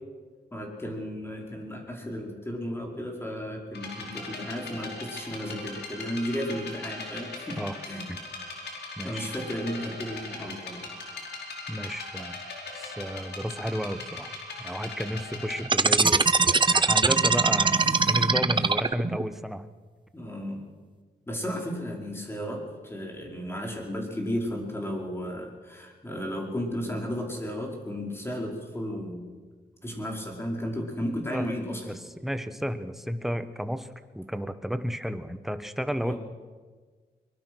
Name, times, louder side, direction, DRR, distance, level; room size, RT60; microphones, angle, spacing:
voice 1, 0.5-8.0 9.0-10.9 17.7-18.2 18.5-18.6 20.1-20.7 21.3-29.3 29.8-32.0 36.0-36.2, equal, 15° left, 0 dB, 5.1 m, -34 dB
sound 1, 3.7-15.7, left 3 dB, 80° left, 4.7 m, -40 dB
voice 2, 11.7-12.4 12.7-19.6 31.3-31.5 31.9-32.0 32.2-33.9 34.1-36.1, equal, ahead, 10 dB, 1.2 m, -32 dB
sound 2, 15.7-19.2, right 4 dB, 30° right, 0.9 m, -21 dB
23.5 x 21.5 x 6.3 m, 1.4 s
wide cardioid pair, 115°, 17 cm